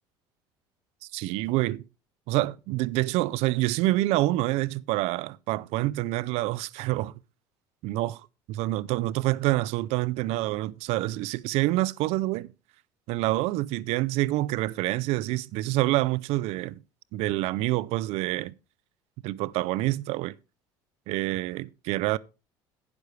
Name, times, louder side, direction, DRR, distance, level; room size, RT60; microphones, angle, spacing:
voice 1, 1.1-1.8 2.3-7.1 7.8-8.2 8.5-12.5 13.1-16.8 17.1-18.5 19.2-20.3 21.1-22.2, right 17 dB, 65° right, 0.5 m, -27 dB
12.0 x 9.7 x 3.2 m
supercardioid pair, 85°, 11 cm